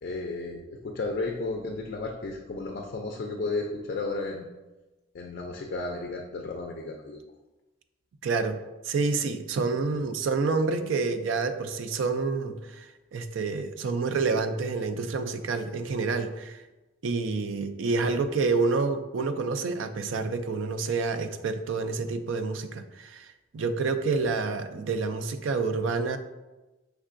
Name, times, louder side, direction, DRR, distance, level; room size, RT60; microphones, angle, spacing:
voice 1, 0.0-4.5 5.1-7.2 18.1-18.2, left 3 dB, 50° left, 1 dB, 0.4 m, -33 dB
voice 2, 8.2-8.6 8.8-16.6 17.0-23.3 23.5-26.2, right 4 dB, 75° right, 9 dB, 0.4 m, -28 dB
5.4 x 3.4 x 2.5 m, 1.1 s
head